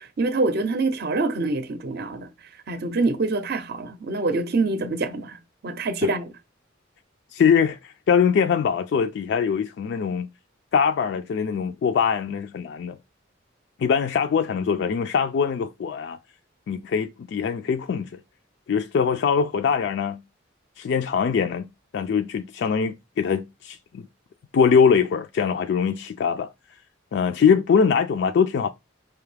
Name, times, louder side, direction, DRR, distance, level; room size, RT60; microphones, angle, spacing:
voice 1, 0.0-2.3 2.7-5.4 5.6-6.3, right 3 dB, 55° right, 0.6 m, -25 dB
voice 2, 7.3-10.3 10.7-13.0 13.8-16.2 16.7-18.2 18.7-20.2 20.8-24.1 24.5-26.5 27.1-28.7, left 6 dB, 60° left, 0.3 m, -22 dB
5.2 x 2.3 x 3.3 m
head